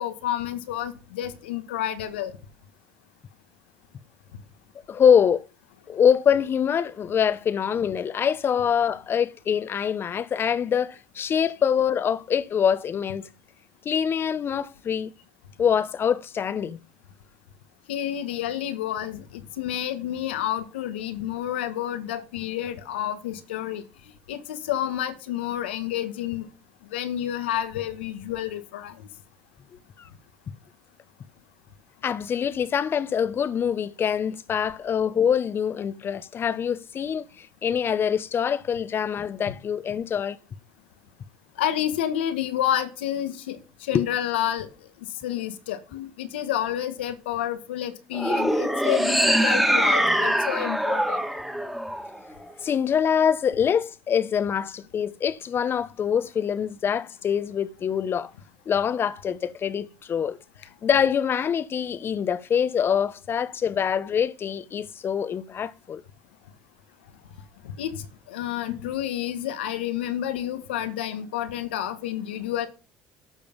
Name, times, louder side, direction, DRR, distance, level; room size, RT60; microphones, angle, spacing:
voice 1, 0.0-2.4 17.9-23.8 24.3-26.5 26.8-29.0 41.6-44.7 45.0-51.2 67.6-72.7, left 11 dB, 85° left, 1.5 m, -29 dB
voice 2, 4.9-5.5 5.9-13.3 13.8-15.1 15.6-16.8 30.0-30.1 32.0-40.4 43.9-44.0 52.6-58.3 58.7-60.4 60.8-66.0 68.7-68.9, left 8 dB, 40° left, 1.1 m, -24 dB
sound 1, 48.1-52.5, equal, 5° right, 2.2 m, -23 dB
13.0 x 6.8 x 5.4 m
hypercardioid pair, 70°, 6 cm